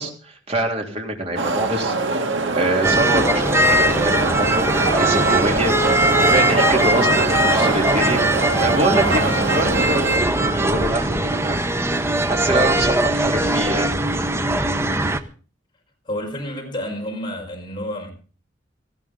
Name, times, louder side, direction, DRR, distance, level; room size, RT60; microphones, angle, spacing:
voice 1, 0.0-1.9 2.5-11.6 11.9-13.9, right 1 dB, 35° right, 3.5 m, -25 dB
sound 1, 1.4-10.2, right 3 dB, 80° right, 1.9 m, -23 dB
sound 2, 2.8-15.2, right 1 dB, 15° right, 0.9 m, -20 dB
voice 2, 16.0-18.1, left 1 dB, 25° left, 5.1 m, -29 dB
18.5 x 15.0 x 3.8 m
head